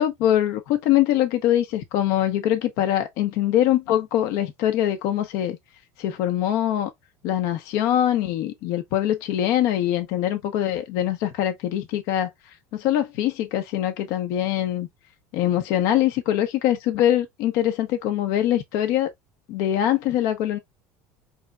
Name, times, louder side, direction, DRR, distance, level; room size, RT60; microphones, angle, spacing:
voice 1, 0.0-5.6 6.0-6.9 7.2-12.3 12.7-14.9 15.3-19.1 19.5-20.6, left 12 dB, 60° left, 0.8 m, -23 dB
5.3 x 3.6 x 2.3 m
cardioid pair, 160°, 6 cm